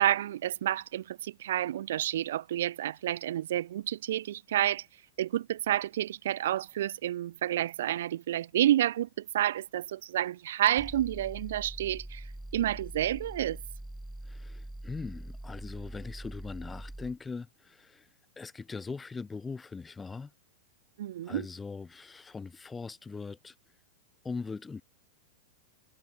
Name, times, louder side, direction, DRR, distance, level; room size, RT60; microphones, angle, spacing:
voice 1, 0.0-4.9 5.2-12.2 12.5-13.6 21.0-21.5, right 12 dB, 75° right, 0.4 m, -29 dB
sound 1, 10.8-17.2, right 1 dB, 5° right, 1.4 m, -43 dB
voice 2, 14.2-18.1 18.4-20.3 21.2-23.5 24.2-24.8, left 4 dB, 10° left, 1.0 m, -40 dB
hypercardioid pair, 130°, 0 cm